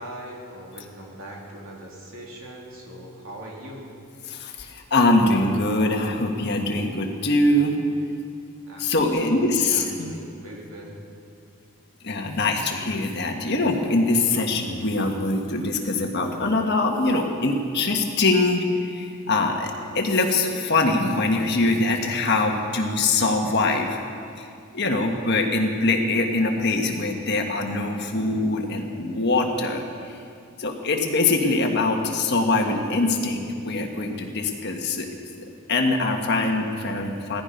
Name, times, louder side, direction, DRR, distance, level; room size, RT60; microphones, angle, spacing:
voice 1, 0.0-3.9 8.7-11.0, right 1 dB, 70° right, -3 dB, 3.2 m, -40 dB
voice 2, 4.3-7.8 8.8-10.2 12.0-24.0 24.4-24.5 24.7-29.8 30.1-30.2 30.6-35.1 35.4-37.4, left 2 dB, 50° left, 2 dB, 1.6 m, -23 dB
17.0 x 15.0 x 5.3 m, 2.4 s
head